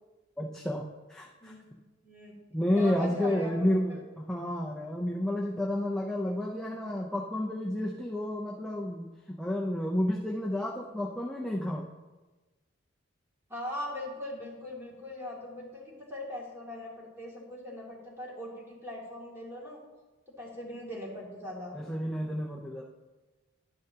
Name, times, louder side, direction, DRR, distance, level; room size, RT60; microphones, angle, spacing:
voice 1, 0.4-1.5 2.5-11.9 21.7-22.8, left 1 dB, 5° left, -2 dB, 0.6 m, -31 dB
voice 2, 1.4-2.4 2.7-4.0 13.5-19.8 20.4-21.8, left 1 dB, 10° right, -4 dB, 2.4 m, -40 dB
12.0 x 10.0 x 2.8 m, 1.2 s
head